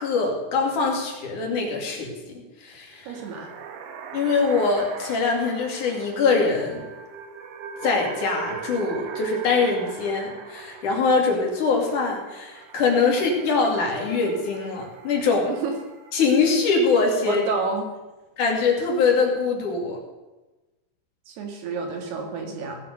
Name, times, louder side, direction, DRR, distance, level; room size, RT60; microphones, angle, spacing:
voice 1, 0.0-3.1 4.1-6.9 7.8-15.5 16.1-17.4 18.4-20.0, left 4 dB, 50° left, 0 dB, 3.6 m, -23 dB
sound 1, 2.9-16.3, right 6 dB, 85° right, 3.5 m, -40 dB
voice 2, 3.1-3.5 15.4-15.7 17.2-17.9 21.3-22.8, right 4 dB, 70° right, 2 dB, 4.1 m, -30 dB
18.0 x 7.6 x 6.6 m, 1.1 s
omnidirectional pair, 4.9 m